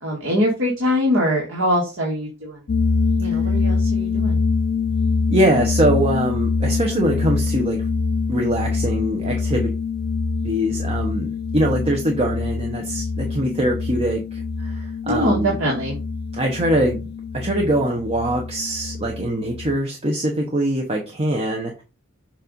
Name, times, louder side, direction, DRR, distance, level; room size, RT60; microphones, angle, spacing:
voice 1, 0.0-2.6 3.2-4.4 15.1-16.0, equal, 65° right, -3 dB, 1.9 m, -23 dB
sound 1, 2.7-19.8, left 4 dB, 50° left, 0.4 m, -24 dB
voice 2, 5.3-7.8 8.3-9.7 10.4-15.6 16.3-17.0 17.3-21.8, right 1 dB, 30° right, 1 dB, 0.9 m, -23 dB
7.2 x 2.6 x 5.2 m, 0.30 s
head